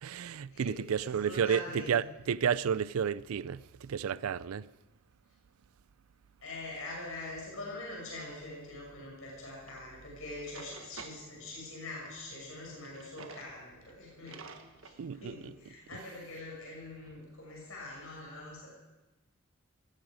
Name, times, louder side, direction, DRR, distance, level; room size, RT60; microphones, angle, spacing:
voice 1, 0.0-4.7 15.0-15.5, right 7 dB, 90° right, 0.4 m, -32 dB
voice 2, 1.2-1.9 6.4-14.4 14.8-18.7, left 2 dB, 75° left, 6.3 m, -44 dB
Drawer open or close, 9.7-9.8 10.3-11.2 12.7-13.5 13.9-14.0 14.3-15.0, right 4 dB, 70° right, 1.4 m, -49 dB
18.0 x 15.0 x 5.1 m
head